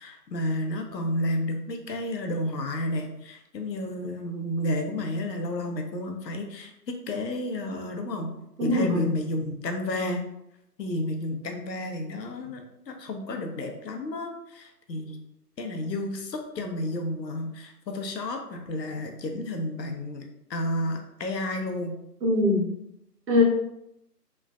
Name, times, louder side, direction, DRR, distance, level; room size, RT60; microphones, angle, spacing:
voice 1, 0.0-8.3 8.6-10.2 10.8-15.2 15.6-20.2 20.5-22.0, left 1 dB, 85° left, 4 dB, 0.7 m, -31 dB
voice 2, 8.6-9.1 22.2-22.7 23.3-23.4, left 2 dB, 80° right, -2 dB, 1.2 m, -22 dB
3.1 x 2.1 x 2.4 m, 0.81 s
figure-of-eight pair, 165°, 49 cm